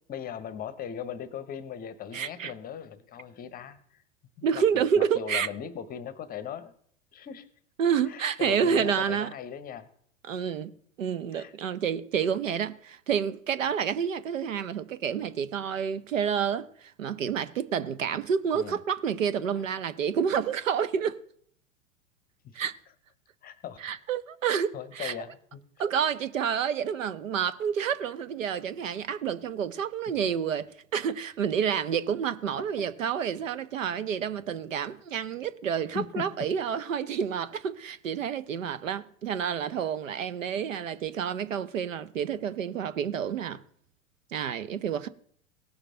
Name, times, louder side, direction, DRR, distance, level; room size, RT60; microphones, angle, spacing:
voice 1, 0.1-4.0 4.4-6.7 7.1-7.5 8.1-9.9 11.3-11.5 18.5-18.8 22.4-22.6 23.4-23.8 24.7-25.6 32.8-32.9 35.9-36.4, left 8 dB, 20° left, 0.9 m, -39 dB
voice 2, 2.1-2.5 4.4-5.5 7.8-9.3 10.2-21.2 22.5-22.7 23.8-25.1 25.8-43.6 44.3-45.1, right 7 dB, 70° right, 0.8 m, -29 dB
18.0 x 6.6 x 3.7 m
figure-of-eight pair, 95°, 40 cm